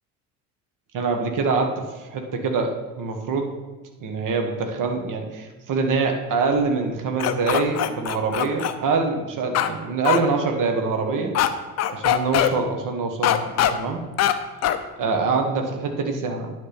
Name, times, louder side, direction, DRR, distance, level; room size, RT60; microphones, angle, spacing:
voice 1, 0.9-3.5 4.0-11.3 11.9-14.1 15.0-16.5, right 4 dB, 45° right, 4 dB, 1.4 m, -25 dB
sound 1, 7.2-8.7 9.5-9.7 10.0-10.2 11.3-11.5 11.8-12.5 13.2-13.7 14.2-14.3 14.6-14.8, left 11 dB, 35° left, 0.6 m, -21 dB
9.9 x 3.5 x 5.9 m, 1.2 s
figure-of-eight pair, 60°, 45 cm